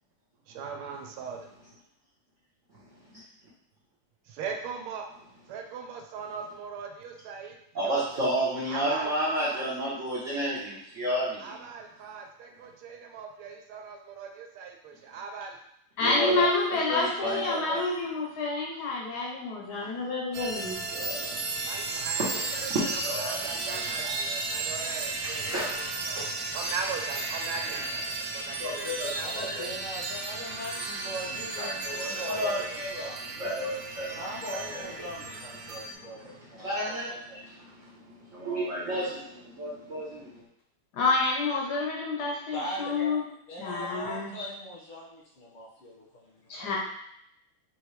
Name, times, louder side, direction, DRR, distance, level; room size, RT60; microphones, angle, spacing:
voice 1, 0.5-1.4 4.3-5.1 5.5-7.6 7.8-8.2 8.7-9.7 11.4-15.6 21.6-29.4, right 5 dB, 85° right, 3 dB, 1.5 m, -40 dB
voice 2, 7.7-11.6 16.0-17.8 19.8-19.9 20.9-21.3 22.4-22.6 22.9-24.1 24.5-24.7 25.2-26.6 28.2-29.6 30.7-31.2 31.6-35.1 35.6-35.7 36.2-37.1 37.3-40.4, right 1 dB, 50° right, -9 dB, 1.0 m, -33 dB
voice 3, 16.0-20.8 40.9-43.2 43.6-44.4 46.5-46.8, left 3 dB, 60° left, -1 dB, 1.2 m, -28 dB
sound 1, 20.3-35.9, right 3 dB, 70° right, 1.2 m, -34 dB
voice 4, 29.2-33.2 34.1-36.2 36.5-37.4 42.5-43.2 43.5-46.8, equal, 90° left, -6 dB, 2.3 m, -41 dB
4.6 x 3.1 x 3.2 m, 0.74 s
omnidirectional pair, 2.3 m